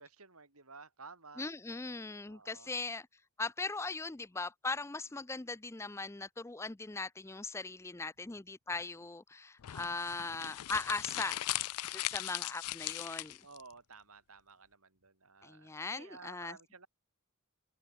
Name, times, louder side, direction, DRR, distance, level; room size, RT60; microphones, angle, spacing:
voice 1, 0.0-1.5 2.2-2.7 12.1-12.5 13.4-16.9, right 4 dB, 75° right, 5.7 m, -54 dB
voice 2, 1.4-3.1 3.4-11.4 11.9-13.4 15.4-16.6, left 3 dB, 10° left, 0.4 m, -39 dB
sound 1, 9.6-13.6, left 16 dB, 85° left, 0.4 m, -38 dB
head